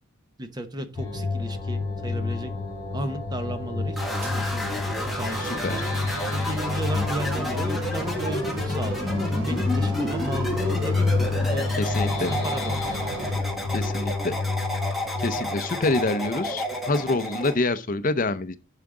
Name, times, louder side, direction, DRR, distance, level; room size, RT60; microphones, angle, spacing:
voice 1, 0.4-2.5 2.9-4.8 5.1-5.5 6.3-11.7 12.4-13.0, right 1 dB, 20° right, 1.0 m, -34 dB
sound 1, 1.0-16.4, left 3 dB, 15° left, 3.9 m, -29 dB
sound 2, 4.0-17.6, equal, ahead, 1.6 m, -31 dB
sound 3, 4.2-13.4, right 2 dB, 85° right, 2.6 m, -38 dB
voice 2, 5.4-5.8 11.8-12.3 13.7-14.3 15.2-18.6, left 2 dB, 40° left, 0.6 m, -26 dB
11.0 x 4.8 x 3.8 m
head